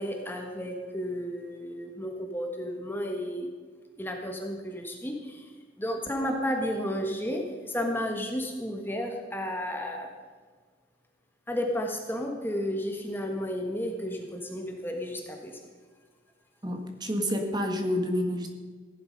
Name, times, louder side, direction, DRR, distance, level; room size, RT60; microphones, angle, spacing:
voice 1, 0.0-3.5 4.0-5.5 5.8-10.1 11.5-15.6, equal, 10° left, 2 dB, 1.5 m, -32 dB
voice 2, 16.6-18.5, equal, 20° right, 3 dB, 1.7 m, -29 dB
16.5 x 11.0 x 5.3 m, 1.5 s
head